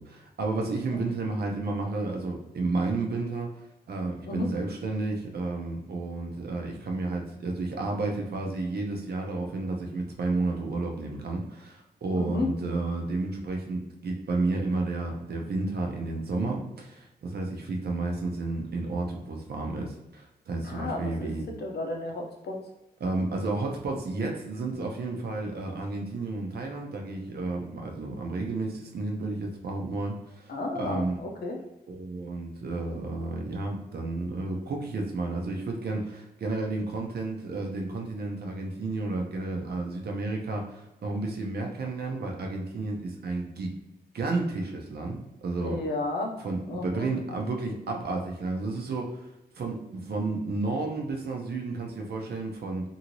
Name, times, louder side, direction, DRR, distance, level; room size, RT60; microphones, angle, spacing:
voice 1, 0.0-3.5 3.9-21.4 23.0-31.2 31.9-43.7 44.1-45.8 46.4-49.3 49.5-52.8, right 3 dB, 75° right, 1 dB, 0.6 m, -31 dB
voice 2, 12.1-12.5 20.6-21.3 21.6-22.6 30.5-31.6 45.6-46.4 46.7-47.1, left 2 dB, 80° left, 1 dB, 0.6 m, -32 dB
2.8 x 2.6 x 2.9 m, 0.91 s
wide cardioid pair, 90°, 17 cm